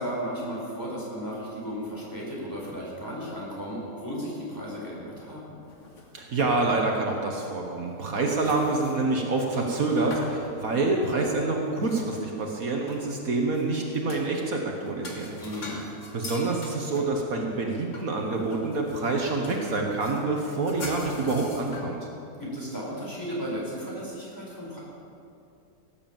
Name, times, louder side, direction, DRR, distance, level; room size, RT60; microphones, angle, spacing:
voice 1, 0.0-5.4 15.4-15.8 22.4-24.8, equal, 10° left, -5 dB, 4.7 m, -34 dB
sound 1, 5.6-6.9 7.1-7.3 7.9-12.5 12.9-14.3 14.8-21.8, left 2 dB, 50° left, 2.3 m, -43 dB
voice 2, 6.1-15.4 16.1-22.0, right 3 dB, 65° right, 1 dB, 1.8 m, -27 dB
17.5 x 9.2 x 7.4 m, 2.6 s
omnidirectional pair, 1.6 m